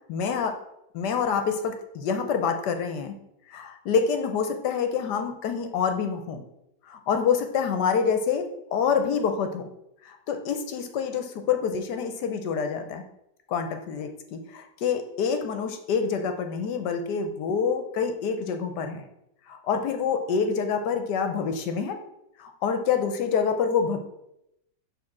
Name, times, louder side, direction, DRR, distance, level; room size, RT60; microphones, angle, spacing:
voice 1, 0.1-0.6 0.9-3.1 3.5-6.4 6.9-9.7 10.0-13.0 13.5-19.0 19.5-22.0 22.4-24.0, left 6 dB, 70° left, 7 dB, 1.2 m, -27 dB
6.4 x 3.7 x 5.9 m, 0.83 s
omnidirectional pair, 2.1 m